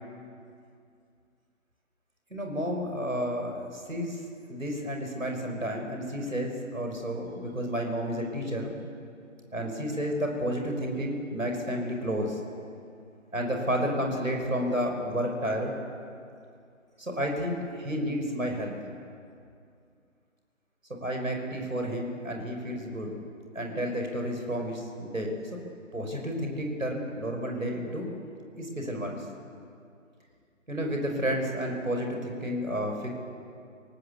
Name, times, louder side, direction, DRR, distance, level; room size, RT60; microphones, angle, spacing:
voice 1, 2.3-4.2 4.5-8.8 9.5-12.4 13.3-15.7 17.0-18.8 21.0-23.1 23.5-25.6 25.9-28.1 28.6-29.3 30.7-33.1, equal, 80° right, 2 dB, 5.5 m, -31 dB
25.0 x 18.0 x 8.3 m, 2.4 s
figure-of-eight pair, 150°, 40 cm